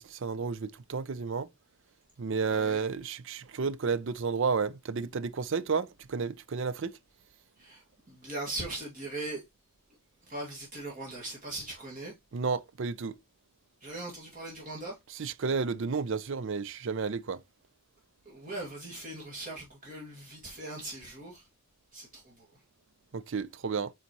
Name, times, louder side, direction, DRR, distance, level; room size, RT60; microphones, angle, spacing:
voice 1, 0.0-1.5 2.2-7.0 12.3-13.1 15.2-17.4 23.1-23.9, right 5 dB, 55° right, 0.5 m, -31 dB
voice 2, 2.5-2.8 7.6-9.4 10.2-12.2 13.8-15.0 18.2-21.5 21.9-22.6, right 2 dB, 35° right, 2.1 m, -40 dB
8.3 x 4.1 x 3.0 m
head